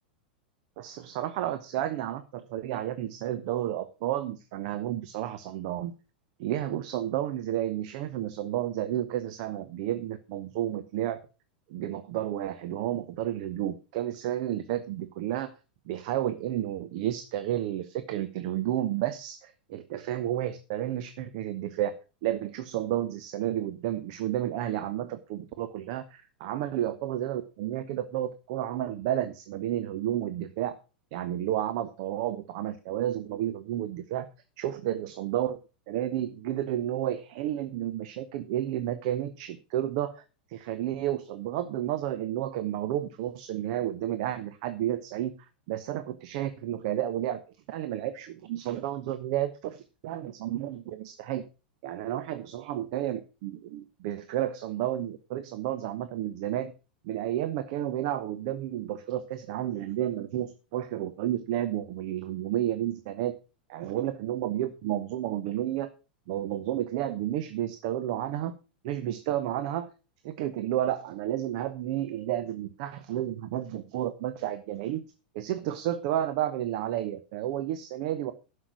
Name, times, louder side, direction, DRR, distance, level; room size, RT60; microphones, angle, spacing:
voice 1, 0.8-5.9 6.4-11.2 11.7-15.5 15.9-30.8 31.1-34.3 34.6-35.6 35.9-40.2 40.5-45.4 45.7-47.4 47.7-51.5 51.8-56.7 57.0-63.3 63.7-65.9 66.3-68.5 68.8-69.9 70.2-75.0 75.3-78.3, right 12 dB, 50° right, 11 dB, 0.9 m, -31 dB
11.0 x 6.6 x 6.0 m, 0.33 s
figure-of-eight pair, 90°, 5 cm